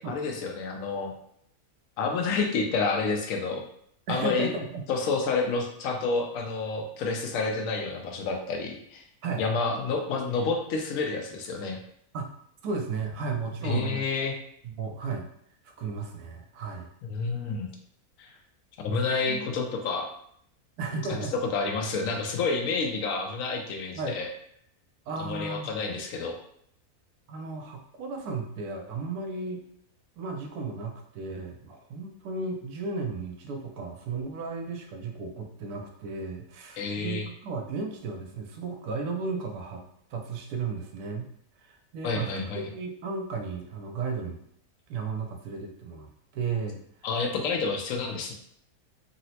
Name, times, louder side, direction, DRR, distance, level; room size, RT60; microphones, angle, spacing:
voice 1, 0.1-1.1 2.0-3.6 4.1-4.5 4.9-9.0 9.4-11.8 13.6-14.3 17.1-17.7 18.2-18.3 18.8-20.1 21.1-21.2 21.5-24.3 25.2-26.4 36.8-37.2 42.0-42.7 47.0-48.3, left 4 dB, 70° left, 3 dB, 0.9 m, -29 dB
voice 2, 4.1-4.8 9.2-9.4 12.1-12.3 12.6-14.0 14.6-15.2 15.8-16.9 18.9-19.5 20.8-21.3 23.9-24.2 25.1-25.7 27.3-29.6 30.2-39.8 40.1-41.3 41.6-44.4 44.9-46.8, right 4 dB, 85° right, 2 dB, 1.1 m, -34 dB
3.9 x 2.0 x 2.7 m, 0.68 s
omnidirectional pair, 1.6 m